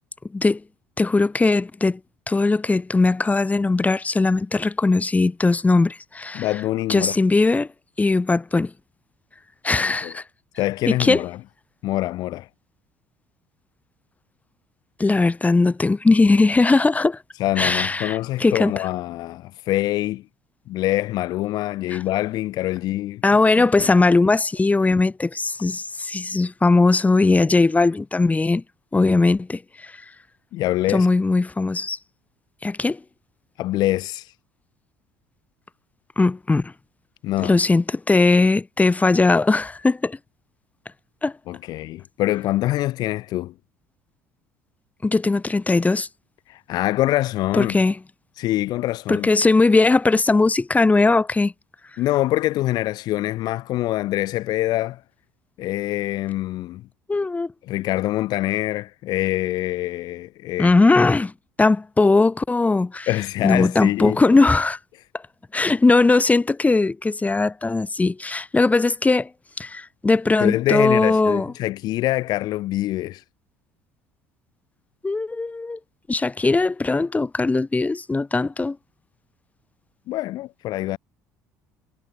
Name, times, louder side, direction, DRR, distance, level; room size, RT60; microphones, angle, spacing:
voice 1, 1.0-2.0 2.3-6.5 6.9-7.7 8.0-8.7 9.6-10.2 10.9-11.3 15.0-17.2 17.6-18.7 21.9-22.0 23.2-28.6 28.9-30.0 30.9-32.0 32.6-33.0 36.2-36.7 37.4-40.2 41.2-41.3 45.0-46.1 47.5-48.0 49.1-51.5 57.1-57.5 60.6-61.3 61.6-63.1 63.4-64.8 65.5-69.3 69.6-71.5 75.0-75.8 76.1-78.8, left 3 dB, 20° left, 7.3 m, -19 dB
voice 2, 6.3-7.1 9.8-10.1 10.6-11.4 11.8-12.5 17.4-20.2 20.7-23.2 23.8-23.9 30.5-31.1 33.6-34.3 37.2-37.6 41.5-43.5 46.5-47.8 48.4-49.3 52.0-55.0 55.6-56.9 57.7-60.7 63.1-64.2 70.4-73.2 80.1-81.0, left 16 dB, 60° left, 4.4 m, -25 dB
hypercardioid pair, 65°, 8 cm